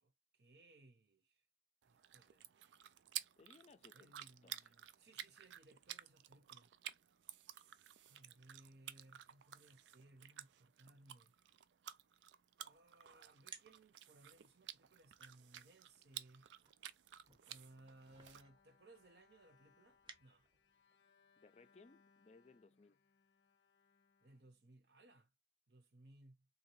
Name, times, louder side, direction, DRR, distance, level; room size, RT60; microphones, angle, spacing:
voice 1, 0.0-1.4 1.9-2.5 3.9-6.7 8.1-11.3 12.6-16.5 17.5-20.5 24.2-25.3 25.7-26.5, right 2 dB, 70° right, 0.9 m, -64 dB
sound 1, 1.8-18.4, right 12 dB, 90° right, 0.4 m, -53 dB
voice 2, 3.4-4.1 4.4-4.7 21.4-23.0, left 3 dB, 35° left, 0.4 m, -64 dB
sound 2, 12.5-20.8, right 5 dB, 25° right, 0.6 m, -64 dB
Bowed string instrument, 17.7-25.1, left 5 dB, 85° left, 0.6 m, -74 dB
3.6 x 2.8 x 3.0 m
head